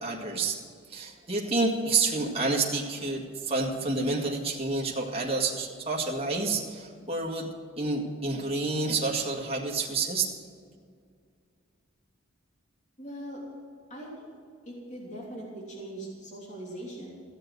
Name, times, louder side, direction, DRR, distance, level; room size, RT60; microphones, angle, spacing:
voice 1, 0.0-0.6 0.9-7.5 7.8-10.3, right 3 dB, 30° right, -1 dB, 1.9 m, -29 dB
voice 2, 13.0-13.4 13.9-14.3 14.6-17.2, right 1 dB, 35° left, -3 dB, 3.2 m, -41 dB
15.5 x 7.8 x 7.9 m, 2.2 s
head